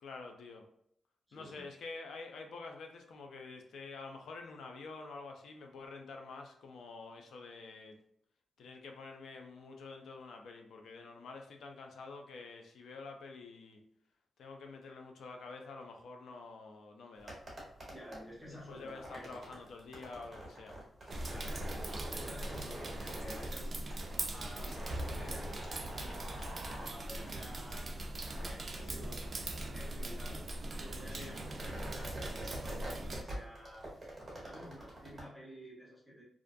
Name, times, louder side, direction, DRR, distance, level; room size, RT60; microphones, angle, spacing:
voice 1, 0.0-0.7 1.3-8.0 8.6-13.8 14.4-17.4 18.5-20.8 31.1-31.3, left 3 dB, 80° left, 3 dB, 0.4 m, -48 dB
voice 2, 1.3-1.7 17.9-19.3 21.2-23.8 24.3-28.0 28.4-30.5 30.8-33.9 34.4-36.2, equal, ahead, -6 dB, 0.8 m, -51 dB
sound 1, 17.2-35.2, right 1 dB, 25° right, 1.0 m, -47 dB
sound 2, 21.0-28.5, left 1 dB, 40° left, 0.6 m, -57 dB
sound 3, 21.1-33.2, right 1 dB, 40° right, 0.3 m, -41 dB
2.4 x 2.2 x 2.5 m, 0.71 s
cardioid pair, 115°, 0 cm